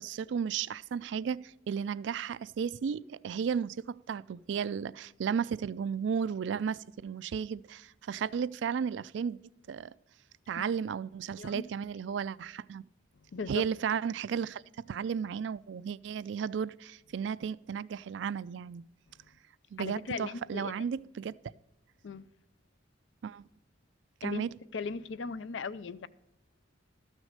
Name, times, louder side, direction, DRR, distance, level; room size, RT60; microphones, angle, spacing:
voice 1, 0.0-9.4 9.7-9.9 10.5-12.9 13.5-18.8 19.7-21.4 23.2-23.4 24.2-24.5, right 7 dB, 65° right, 0.3 m, -34 dB
voice 2, 13.3-13.6 19.8-20.7 22.0-22.2 24.2-24.4 24.7-26.1, left 4 dB, 70° left, 0.5 m, -37 dB
13.0 x 6.2 x 6.5 m
head